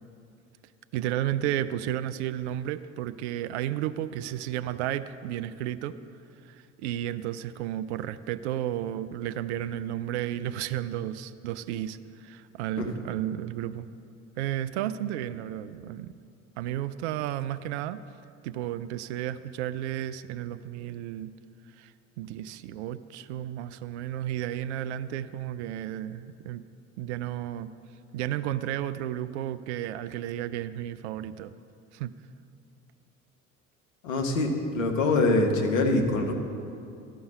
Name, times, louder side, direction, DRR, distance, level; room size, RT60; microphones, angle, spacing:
voice 1, 0.9-5.9 6.4-13.9 14.4-16.1 16.6-18.0 18.4-21.3 21.8-21.9 22.2-26.6 27.0-27.7 28.1-31.5 31.9-32.1, right 12 dB, 55° right, 13 dB, 0.5 m, -32 dB
voice 2, 34.0-36.3, left 2 dB, 70° left, 2 dB, 1.2 m, -24 dB
13.0 x 5.5 x 6.7 m, 2.5 s
figure-of-eight pair, 60°, 41 cm